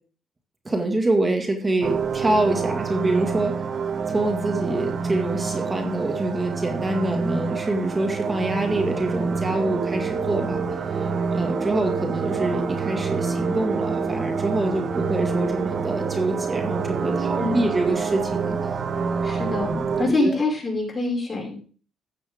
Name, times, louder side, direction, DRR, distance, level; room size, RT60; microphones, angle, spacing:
voice 1, 0.7-3.6 4.1-10.6 10.9-18.7 19.7-20.4, right 2 dB, 25° right, 4 dB, 1.9 m, -26 dB
sound 1, 1.8-20.1, right 5 dB, 50° right, 1.3 m, -27 dB
voice 2, 19.2-21.6, left 2 dB, 25° left, -2 dB, 5.6 m, -25 dB
13.5 x 8.8 x 3.6 m, 0.40 s
cardioid pair, 90°, 0 cm